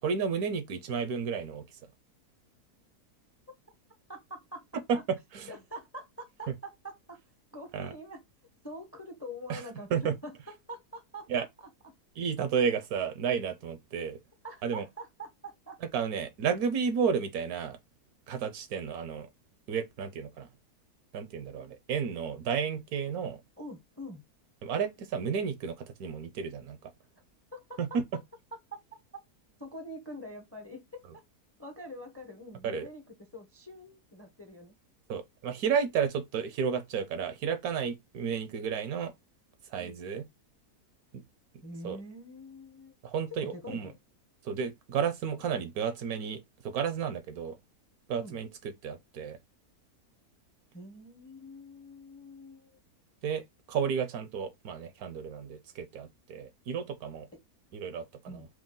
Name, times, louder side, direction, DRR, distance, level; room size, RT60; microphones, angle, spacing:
voice 1, 0.0-1.8 4.9-5.0 5.3-5.5 7.7-7.9 9.5-9.6 9.9-10.1 11.3-11.4 12.2-14.2 14.6-14.8 15.9-17.8 18.3-19.3 19.7-20.5 21.1-23.4 24.6-26.9 27.8-28.0 32.6-32.9 35.1-39.1 39.6-40.3 41.8-42.0 43.0-43.9 44.4-47.6 48.1-49.4 53.2-57.3 57.7-58.5, right 6 dB, 75° right, 1.2 m, -32 dB
voice 2, 4.1-4.7 5.5-7.2 7.5-8.2 8.6-9.9 10.2-11.4 14.4-15.8 23.6-24.2 27.5-27.8 29.6-31.2 31.6-33.0 33.3-34.7 39.8-40.0 41.6-42.9 43.3-44.0 48.2-48.4 50.7-52.8 58.3-58.5, equal, 15° left, 0.6 m, -45 dB
4.7 x 2.3 x 3.7 m
omnidirectional pair, 1.7 m